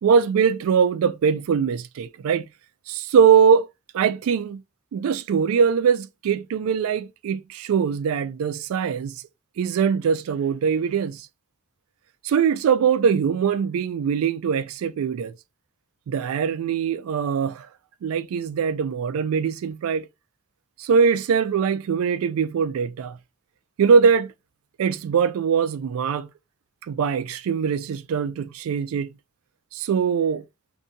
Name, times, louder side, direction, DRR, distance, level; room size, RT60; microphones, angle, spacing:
voice 1, 0.0-2.4 2.9-3.7 3.9-4.6 4.9-9.2 9.6-11.3 12.2-15.3 16.1-17.7 18.0-20.1 20.8-23.2 23.8-24.3 24.8-26.3 26.9-29.1 29.7-30.4, right 6 dB, 75° right, 0.3 m, -22 dB
2.7 x 2.6 x 2.2 m
head